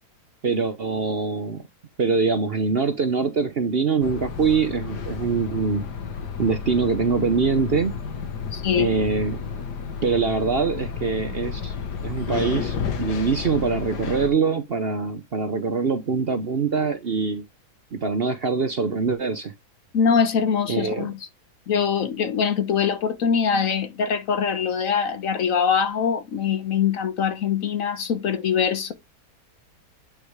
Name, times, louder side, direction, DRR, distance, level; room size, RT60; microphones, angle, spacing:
voice 1, 0.4-1.6 2.0-5.9 6.4-8.0 8.7-9.4 10.0-11.7 12.0-17.5 17.9-19.5 20.7-21.1, right 5 dB, 45° right, 0.9 m, -24 dB
sound 1, 4.0-14.3, left 6 dB, 85° left, 1.9 m, -31 dB
voice 2, 8.5-8.9 19.9-21.1 21.7-28.9, left 7 dB, 60° left, 1.2 m, -23 dB
9.0 x 4.8 x 3.4 m
omnidirectional pair, 1.7 m